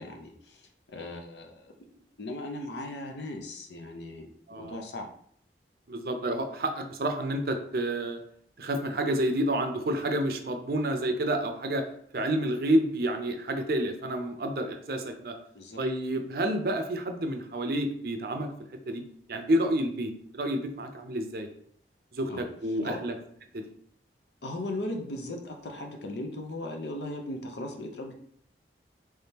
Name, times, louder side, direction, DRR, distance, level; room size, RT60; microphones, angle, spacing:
voice 1, 0.0-5.1 15.5-15.8 22.3-22.4 22.7-23.0 24.4-28.1, left 1 dB, 75° left, 2 dB, 0.7 m, -38 dB
voice 2, 4.5-4.8 5.9-8.2 8.6-11.8 12.1-15.3 15.8-18.5 18.9-19.0 19.3-21.5 22.1-23.1 23.5-23.6, right 1 dB, 55° right, 6 dB, 0.5 m, -29 dB
3.5 x 3.2 x 2.8 m, 0.63 s
head